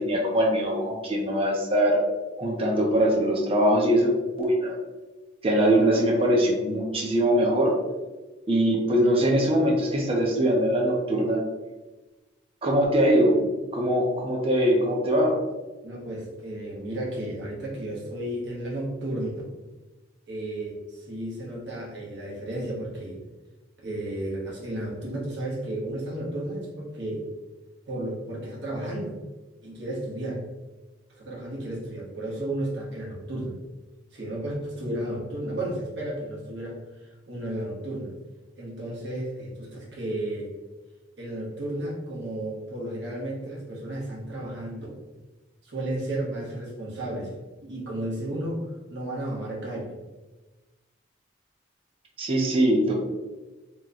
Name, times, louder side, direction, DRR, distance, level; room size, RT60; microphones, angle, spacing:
voice 1, 0.0-2.0 2.4-4.1 4.4-4.8 5.4-7.7 8.5-11.4 12.6-13.4 13.7-15.3 52.2-52.9, right 1 dB, 30° right, -1 dB, 0.6 m, -22 dB
voice 2, 15.8-19.4 20.3-23.2 23.8-27.3 27.8-29.2 29.6-30.4 31.2-33.6 34.1-38.1 38.6-40.5 41.2-44.9 45.6-47.3 47.6-49.9, right 1 dB, 65° right, -4 dB, 1.1 m, -33 dB
3.0 x 2.2 x 3.8 m, 1.2 s
head